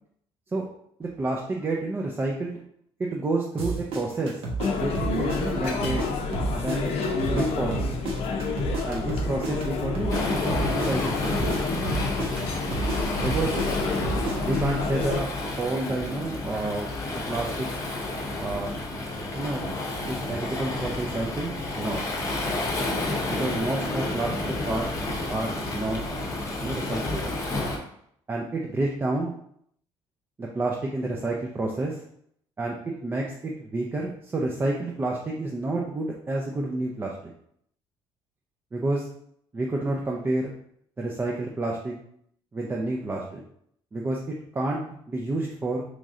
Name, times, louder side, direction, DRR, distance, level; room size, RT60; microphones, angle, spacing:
voice 1, 1.0-2.6 3.0-4.4 4.7-6.1 6.6-6.9 7.3-7.9 8.8-10.3 10.7-11.5 13.2-13.6 14.5-15.3 15.6-16.9 17.3-17.7 18.4-18.7 19.3-19.7 20.1-22.0 23.3-24.4 24.7-24.9 25.3-26.0 26.6-27.4 28.3-29.3 30.4-32.0 32.6-37.3 38.7-39.0 39.5-40.5 41.0-41.9 42.5-43.4 43.9-44.2 44.5-45.8, right 2 dB, 20° right, -2 dB, 0.5 m, -29 dB
sound 1, 3.6-6.1 6.3-10.2 10.5-14.6, right 3 dB, 65° right, 0.9 m, -31 dB
sound 2, 4.6-15.2, left 4 dB, 75° left, 0.6 m, -29 dB
Waves surf, 10.1-27.8, left 2 dB, 30° left, 0.7 m, -30 dB
3.1 x 2.6 x 3.6 m, 0.69 s
cardioid pair, 120°, 10 cm